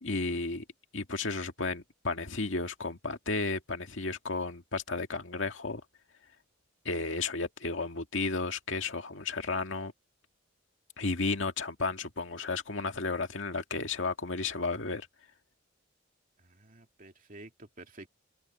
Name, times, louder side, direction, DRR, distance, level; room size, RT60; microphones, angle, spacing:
voice 1, 0.0-0.6 0.9-5.8 6.8-9.9 11.0-15.1, left 3 dB, 70° left, 2.2 m, -33 dB
voice 2, 16.4-18.1, right 2 dB, 45° right, 2.7 m, -50 dB
head